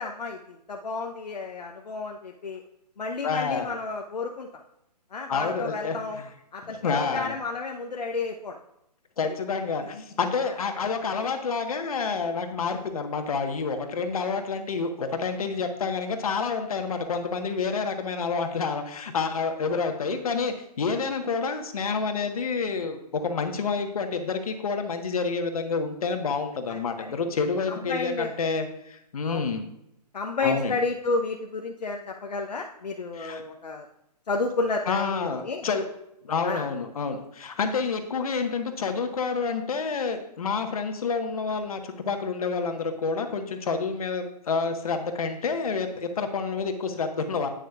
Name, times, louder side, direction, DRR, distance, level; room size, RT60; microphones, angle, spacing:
voice 1, 0.0-2.6 3.0-4.5 5.1-6.2 6.5-8.6 10.4-10.5 19.7-19.8 26.7-26.8 27.7-28.3 29.2-29.5 30.1-33.9 34.3-35.7 36.4-36.6, left 3 dB, 75° left, 1 dB, 0.8 m, -31 dB
voice 2, 3.2-3.7 5.3-6.3 6.6-7.3 9.2-29.7 30.4-30.8 33.1-33.4 34.9-35.8 36.2-47.5, left 5 dB, 60° left, 6 dB, 1.3 m, -28 dB
10.5 x 9.0 x 2.4 m, 0.82 s
figure-of-eight pair, 140°, 21 cm